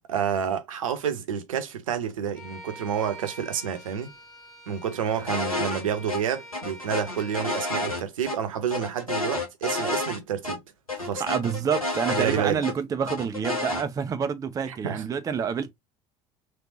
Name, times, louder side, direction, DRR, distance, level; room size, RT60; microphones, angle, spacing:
voice 1, 0.1-4.1 4.7-10.6 11.0-11.2 12.1-12.6 14.7-15.0, right 8 dB, 70° right, 0.7 m, -29 dB
Bowed string instrument, 2.3-8.1, equal, ahead, 1.5 m, -45 dB
sound 1, 5.3-5.8 6.1-6.2 6.5-8.4 8.7-10.2 10.4-10.6 10.9-12.7 13.1-13.8, left 2 dB, 85° left, 1.0 m, -30 dB
voice 2, 11.2-15.7, right 7 dB, 20° right, 0.4 m, -28 dB
3.4 x 2.9 x 2.7 m
figure-of-eight pair, 65°, 18 cm